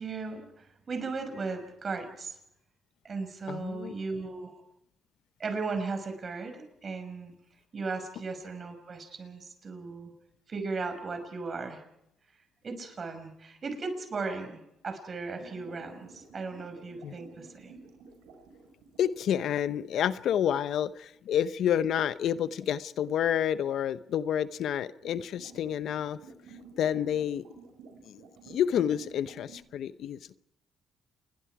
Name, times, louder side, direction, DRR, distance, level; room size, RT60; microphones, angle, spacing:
voice 1, 0.0-2.4 3.0-4.6 5.4-7.3 7.7-10.1 10.5-11.8 12.6-17.8, right 4 dB, 40° right, 7 dB, 5.8 m, -36 dB
voice 2, 3.5-3.9 17.0-17.1 19.0-26.2 26.8-27.5 28.0-30.4, left 9 dB, 75° left, 14 dB, 0.8 m, -29 dB
sound 1, 15.4-19.3 19.9-20.4 24.5-29.6, right 4 dB, 90° right, 5.4 m, -52 dB
29.0 x 21.5 x 4.8 m, 0.81 s
cardioid pair, 90°, 0 cm